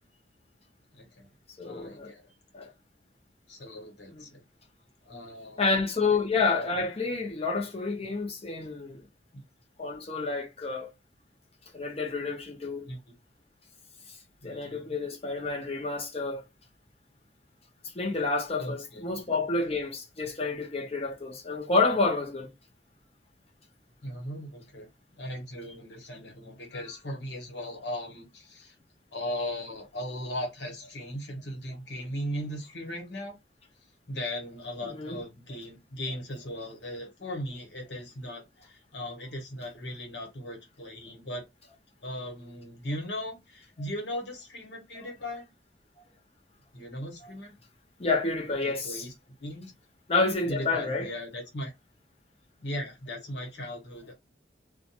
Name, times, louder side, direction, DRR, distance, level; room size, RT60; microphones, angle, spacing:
voice 1, 0.9-1.3 1.6-2.2 3.5-4.4 5.1-5.8 9.3-9.4 12.8-13.1 14.4-14.9 18.6-19.0 24.0-24.9 25.2-28.7 29.1-33.4 34.1-41.5 42.0-45.5 46.7-47.5 48.6-49.1 49.4-49.7 50.5-51.7 52.6-54.1, left 1 dB, 70° left, 1.1 m, -38 dB
voice 2, 1.6-2.1 2.5-2.7 4.1-4.2 5.6-9.1 9.8-10.9 11.7-12.9 14.4-16.4 17.9-22.5 34.9-35.2 48.0-49.0 50.1-51.1, left 3 dB, 35° left, 0.7 m, -29 dB
2.5 x 2.2 x 2.8 m
head